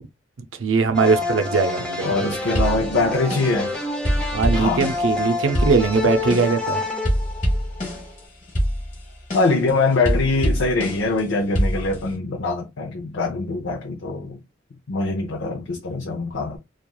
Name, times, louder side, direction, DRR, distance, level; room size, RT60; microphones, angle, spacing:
voice 1, 0.5-2.4 4.3-6.8, right 4 dB, 85° right, 0.5 m, -21 dB
sound 1, 0.9-8.0, left 2 dB, 5° left, 0.5 m, -28 dB
voice 2, 2.0-3.7 4.5-4.9 9.3-14.4 14.9-16.6, left 3 dB, 75° left, 0.5 m, -23 dB
sound 2, 2.5-3.7 4.0-6.7 7.0-8.2 8.5-11.2 11.5-12.1, equal, 40° left, 1.1 m, -25 dB
3.0 x 2.4 x 2.2 m
head